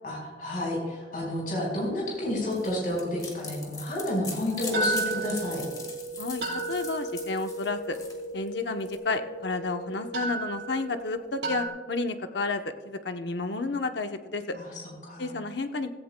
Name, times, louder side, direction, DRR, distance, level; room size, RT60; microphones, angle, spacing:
voice 1, 0.0-5.6 14.5-14.7 15.0-15.3, left 1 dB, 50° left, -2 dB, 4.5 m, -30 dB
sound 1, 1.6-3.2 3.6-3.7 4.7-11.7, right 2 dB, 80° right, 4.4 m, -34 dB
sound 2, 2.5-9.0, left 4 dB, 20° left, 1.8 m, -41 dB
voice 2, 6.2-8.0 8.3-14.5 15.2-15.9, left 3 dB, 80° left, 7 dB, 0.8 m, -31 dB
16.0 x 15.5 x 2.2 m, 1.3 s
head